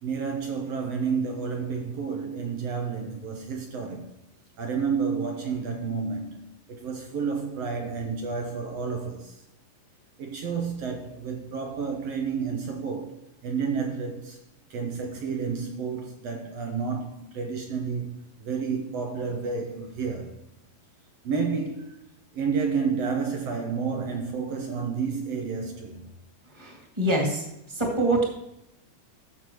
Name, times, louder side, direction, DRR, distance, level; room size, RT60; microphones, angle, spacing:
voice 1, 0.0-4.1 4.6-9.4 10.2-14.4 14.7-18.1 18.4-20.4 21.2-21.9 22.3-26.1, right 5 dB, 70° right, 1.6 m, -30 dB
voice 2, 26.6-27.4 27.7-28.2, right 1 dB, 10° right, 1.6 m, -25 dB
14.5 x 6.5 x 3.1 m
omnidirectional pair, 4.1 m